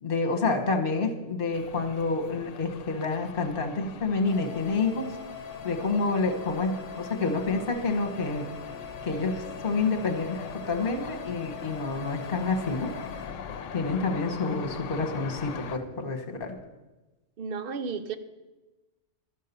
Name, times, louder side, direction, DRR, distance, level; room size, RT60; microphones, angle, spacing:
voice 1, 0.0-5.1 5.6-8.5 9.0-12.9 13.7-16.6, left 3 dB, 45° left, 3 dB, 1.3 m, -28 dB
sound 1, 1.5-15.8, left 7 dB, 75° left, 1.0 m, -42 dB
sound 2, 4.2-13.2, left 6 dB, 35° right, 4.1 m, -43 dB
voice 2, 17.4-18.2, right 5 dB, 55° right, 10 dB, 0.7 m, -33 dB
12.5 x 5.5 x 6.7 m, 1.1 s
omnidirectional pair, 1.3 m